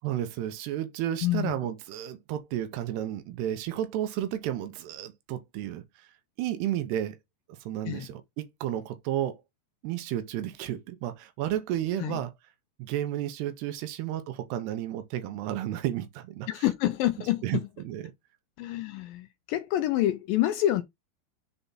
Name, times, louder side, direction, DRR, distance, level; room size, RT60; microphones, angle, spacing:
voice 1, 0.0-5.8 6.4-7.2 7.5-9.4 9.8-12.3 12.8-16.6 17.4-18.1, right 12 dB, 85° right, 2.9 m, -32 dB
voice 2, 1.2-1.5 7.9-8.1 12.0-12.2 16.5-17.4 18.6-20.8, left 13 dB, 90° left, 2.0 m, -27 dB
6.9 x 4.0 x 3.8 m
omnidirectional pair, 4.7 m